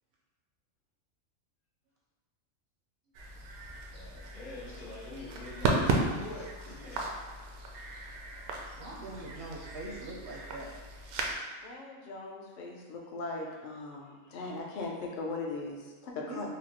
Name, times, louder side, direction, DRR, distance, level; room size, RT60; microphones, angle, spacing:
sound 1, 3.1-11.3, right 3 dB, 85° right, 1.0 m, -35 dB
voice 1, 3.9-7.0, left 2 dB, 90° left, -7 dB, 1.5 m, -45 dB
voice 2, 8.8-10.7 16.3-16.5, right 2 dB, 65° right, -3 dB, 0.7 m, -42 dB
voice 3, 11.6-16.5, left 3 dB, 60° left, -1 dB, 0.5 m, -39 dB
4.9 x 2.0 x 2.9 m, 1.4 s
omnidirectional pair, 1.5 m